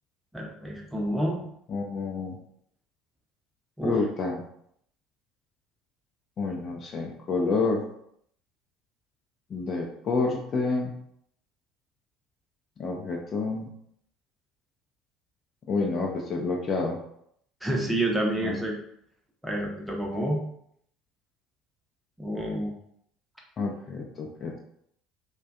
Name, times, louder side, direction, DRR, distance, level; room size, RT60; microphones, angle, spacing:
voice 1, 0.3-1.4 3.8-4.0 17.6-18.8 19.4-20.4 22.2-22.7, right 1 dB, 5° right, -1 dB, 0.6 m, -28 dB
voice 2, 1.7-2.4 3.8-4.4 6.4-7.8 9.5-10.9 12.8-13.7 15.7-17.0 18.4-18.6 23.6-24.6, left 3 dB, 40° left, 0 dB, 0.4 m, -28 dB
2.4 x 2.2 x 2.3 m, 0.69 s
figure-of-eight pair, 60°, 0 cm